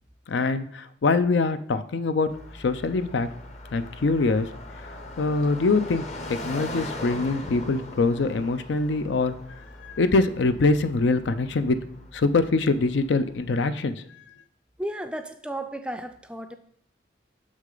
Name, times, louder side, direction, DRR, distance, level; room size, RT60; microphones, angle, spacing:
voice 1, 0.3-2.3 2.6-3.3 3.7-4.5 5.2-9.3 9.8-11.8 12.1-14.0, left 3 dB, 80° left, 12 dB, 0.5 m, -24 dB
Car passing by, 2.3-13.4, left 1 dB, 35° left, 0.7 m, -40 dB
voice 2, 14.8-16.5, right 1 dB, 5° right, 8 dB, 0.4 m, -33 dB
6.5 x 6.1 x 3.8 m, 0.64 s
head